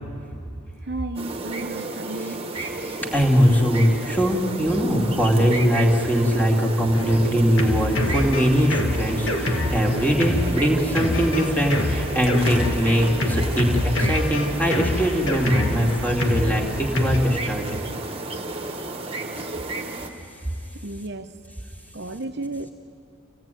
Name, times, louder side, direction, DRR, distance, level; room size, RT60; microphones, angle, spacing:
voice 1, 0.9-2.4 20.8-21.3 21.9-22.7, right 2 dB, 55° right, 0.9 m, -33 dB
sound 1, 1.1-20.1, right 2 dB, 25° right, 1.5 m, -32 dB
voice 2, 2.2-17.8, equal, 10° left, 2.5 m, -21 dB
Drum kit, 6.9-17.2, left 1 dB, 70° left, 2.1 m, -26 dB
27.5 x 17.0 x 9.2 m
head